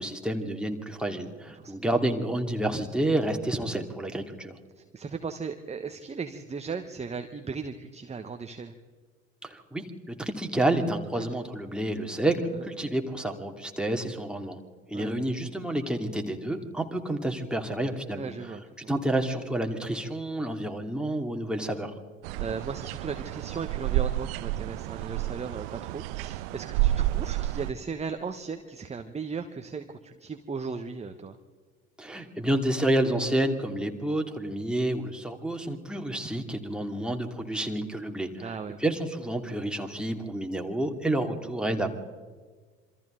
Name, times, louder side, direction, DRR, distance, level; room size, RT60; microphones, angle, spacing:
voice 1, 0.0-4.5 9.4-9.8 10.2-14.6 14.9-18.3 18.9-21.9 32.0-38.5 38.8-41.9, right 1 dB, ahead, 3 dB, 2.6 m, -29 dB
voice 2, 1.5-1.9 4.8-8.7 11.2-11.3 14.9-15.2 18.2-18.9 22.4-31.4 38.4-38.8, right 5 dB, 20° right, 7 dB, 1.3 m, -37 dB
sound 1, 22.2-27.7, right 15 dB, 55° right, 0.5 m, -30 dB
27.0 x 24.5 x 3.9 m, 1.5 s
figure-of-eight pair, 60°, 34 cm